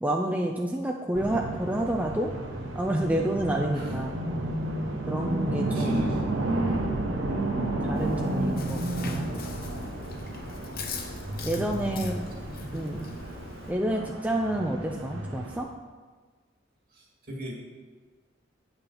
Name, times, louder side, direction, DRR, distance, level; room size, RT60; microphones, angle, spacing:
voice 1, 0.0-2.3 2.7-4.2 5.1-6.0 7.5-9.5 11.4-12.2 12.7-13.1 13.7-15.7, right 1 dB, 10° right, 1 dB, 0.5 m, -29 dB
sound 1, 1.1-15.6, right 2 dB, 80° right, 1.1 m, -32 dB
voice 2, 5.7-6.2 16.9-17.6, left 1 dB, 50° right, -2 dB, 2.3 m, -38 dB
Chewing mastication, 8.0-13.7, left 3 dB, 50° left, 0.9 m, -41 dB
8.7 x 5.7 x 5.5 m, 1.4 s
head